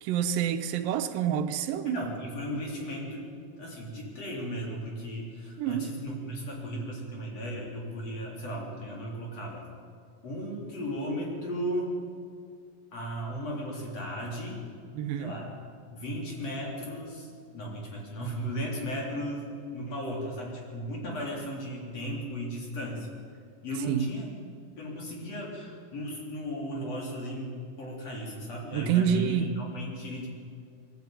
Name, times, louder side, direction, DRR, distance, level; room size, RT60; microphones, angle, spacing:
voice 1, 0.0-2.0 5.6-5.8 14.9-15.4 23.9-24.1 28.7-29.5, right 9 dB, 80° right, 8 dB, 2.5 m, -27 dB
voice 2, 1.9-9.6 10.2-12.0 12.9-14.6 15.2-15.5 15.9-23.1 23.6-24.3 24.8-30.3, equal, 45° left, -2 dB, 4.4 m, -36 dB
21.5 x 15.0 x 9.0 m, 2.4 s
omnidirectional pair, 4.1 m